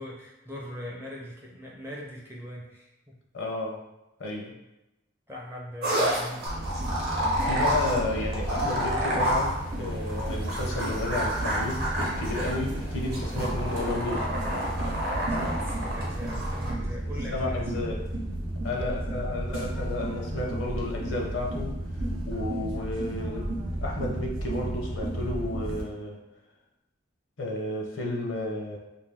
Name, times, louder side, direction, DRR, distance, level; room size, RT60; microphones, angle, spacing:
voice 1, 0.0-3.2 5.3-6.6 15.2-18.0 18.7-19.4, left 1 dB, 10° right, -3 dB, 0.5 m, -41 dB
voice 2, 3.3-3.8 4.2-4.5 7.3-14.3 17.3-18.0 18.6-26.2 27.4-28.8, left 2 dB, 75° left, -1 dB, 0.7 m, -32 dB
sound 1, 5.8-16.7, equal, 45° right, 0.9 m, -30 dB
sound 2, 6.5-25.8, right 1 dB, 80° right, 0.7 m, -33 dB
2.6 x 2.6 x 3.4 m, 0.96 s
head